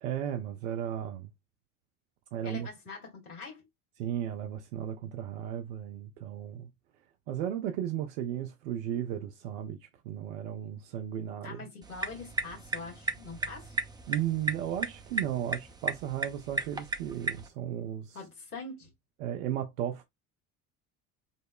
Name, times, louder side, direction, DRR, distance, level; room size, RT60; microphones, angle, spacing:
voice 1, 0.0-1.3 2.3-2.7 4.0-6.7 7.3-11.7 14.1-18.2 19.2-20.0, right 10 dB, 60° right, 0.7 m, -35 dB
voice 2, 2.4-3.6 11.4-13.7 18.1-18.9, left 3 dB, 85° left, 1.4 m, -43 dB
sound 1, 11.8-17.5, right 3 dB, 10° right, 0.5 m, -36 dB
5.2 x 2.1 x 2.3 m
figure-of-eight pair, 60°, 44 cm